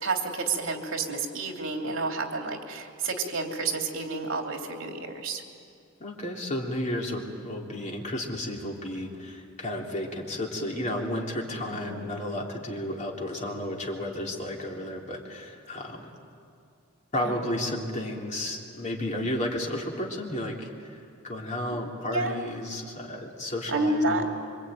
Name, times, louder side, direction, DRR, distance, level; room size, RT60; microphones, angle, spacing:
voice 1, 0.0-5.4 11.7-12.1 17.1-17.4 22.1-22.3 23.7-24.2, right 3 dB, 70° right, 2 dB, 3.0 m, -30 dB
voice 2, 6.0-16.1 17.1-24.3, left 1 dB, 35° left, -1 dB, 3.4 m, -33 dB
26.5 x 24.5 x 9.2 m, 2.4 s
head